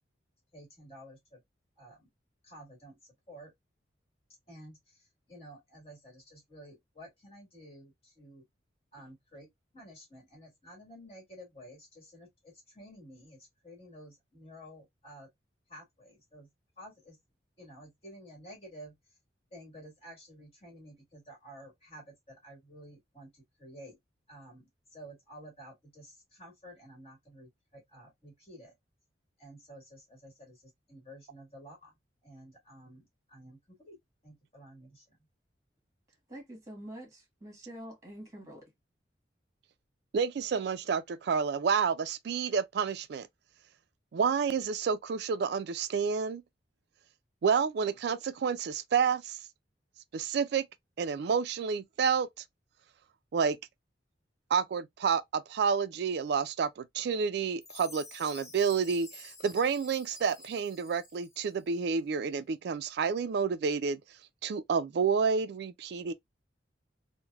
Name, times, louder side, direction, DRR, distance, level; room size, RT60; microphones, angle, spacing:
voice 1, 0.5-1.4 1.8-2.1 2.4-3.5 4.5-8.4 8.9-9.5 9.7-15.3 15.7-16.5 16.8-17.2 17.6-19.0 19.5-24.0 24.3-28.7 29.4-31.9 32.2-34.0 34.2-35.2, equal, 35° left, 1.6 m, -52 dB
voice 2, 36.3-38.7, right 1 dB, 20° right, 1.2 m, -46 dB
voice 3, 40.1-43.3 44.1-46.4 47.4-49.4 50.1-50.7 51.0-52.3 53.3-53.6 54.5-64.0 64.4-66.1, right 6 dB, 60° right, 0.3 m, -29 dB
Chime, 57.6-61.6, left 2 dB, 15° left, 0.5 m, -50 dB
3.1 x 2.1 x 2.3 m
head